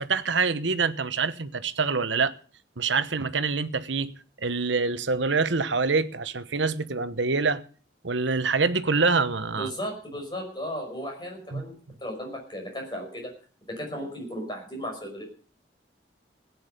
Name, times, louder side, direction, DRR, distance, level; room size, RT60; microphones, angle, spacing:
voice 1, 0.0-2.3 2.8-4.1 4.4-7.6 8.0-9.7 11.5-11.6, right 4 dB, 80° right, 1.1 m, -25 dB
voice 2, 9.5-11.7 12.0-13.3 13.6-15.2, equal, 25° left, 5.7 m, -35 dB
16.0 x 9.7 x 6.7 m
head